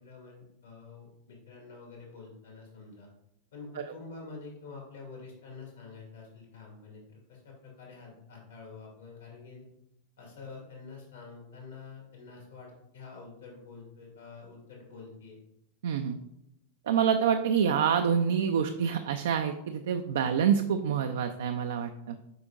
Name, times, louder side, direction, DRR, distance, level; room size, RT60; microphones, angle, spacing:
voice 1, 0.0-3.1 3.5-7.0 7.3-9.6 10.2-15.4, left 4 dB, 65° left, -2 dB, 2.3 m, -47 dB
voice 2, 15.8-16.2 16.9-22.2, right 7 dB, 60° right, 6 dB, 0.4 m, -27 dB
7.8 x 5.1 x 2.5 m, 0.82 s
figure-of-eight pair, 90°, 0 cm